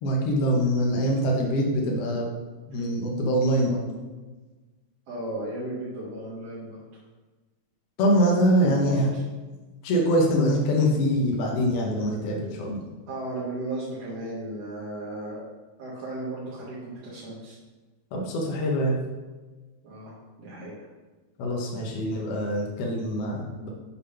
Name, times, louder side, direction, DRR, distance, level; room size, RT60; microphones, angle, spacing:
voice 1, 0.0-2.2 2.7-3.9 8.0-9.1 9.8-12.8 18.1-19.0 21.4-23.7, equal, 65° left, -1 dB, 1.7 m, -24 dB
voice 2, 5.1-6.8 8.6-9.2 13.1-15.4 15.8-17.6 19.8-20.1 20.4-20.8, right 1 dB, 60° right, -8 dB, 2.2 m, -35 dB
6.8 x 3.7 x 5.6 m, 1.2 s
omnidirectional pair, 3.4 m